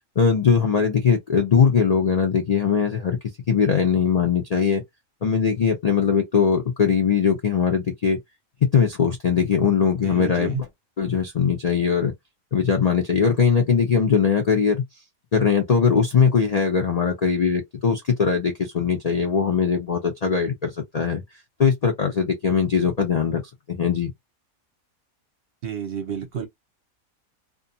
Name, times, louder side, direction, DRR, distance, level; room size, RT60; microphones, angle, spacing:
voice 1, 0.2-3.2 3.5-4.8 5.2-8.2 8.6-10.5 11.0-12.1 12.5-14.8 15.3-21.2 21.6-23.4 23.7-24.1, left 6 dB, 70° left, 0.3 m, -20 dB
voice 2, 10.0-10.6 25.6-26.5, right 7 dB, 55° right, 0.7 m, -30 dB
2.5 x 2.2 x 2.6 m
omnidirectional pair, 1.5 m